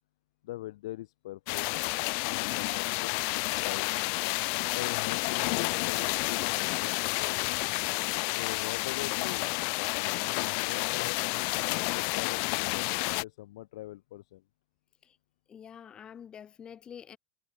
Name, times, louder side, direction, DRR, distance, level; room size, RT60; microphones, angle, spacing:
voice 1, 0.4-1.7 2.3-3.9 4.7-6.9 7.2-7.4 8.3-9.5 10.0-14.4, left 16 dB, 75° left, 6.5 m, -42 dB
sound 1, 1.5-13.2, left 40 dB or more, 60° left, 0.8 m, -30 dB
voice 2, 15.5-17.2, left 8 dB, 30° left, 2.6 m, -47 dB
supercardioid pair, 115°, 3 cm